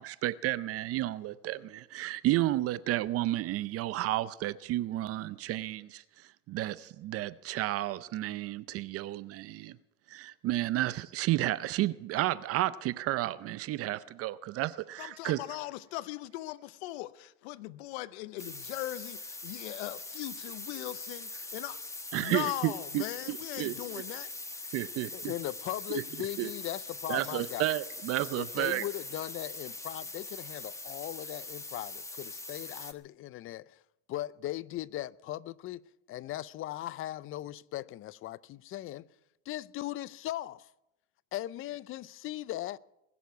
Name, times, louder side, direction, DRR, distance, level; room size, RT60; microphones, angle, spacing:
voice 1, 0.0-9.8 10.1-15.4 22.1-23.7 24.7-25.1 25.9-26.0 26.4-26.5 27.1-28.8, right 15 dB, 45° right, 0.6 m, -32 dB
voice 2, 15.0-21.8 22.2-24.3, left 17 dB, 80° left, 0.7 m, -39 dB
sound 1, 18.4-32.9, left 2 dB, 10° left, 1.2 m, -42 dB
voice 3, 25.1-27.7 28.3-33.8 34.1-35.8 36.1-39.1 39.5-40.7 41.3-42.8, left 14 dB, 40° left, 0.6 m, -38 dB
20.5 x 7.1 x 9.3 m
supercardioid pair, 100°, 32 cm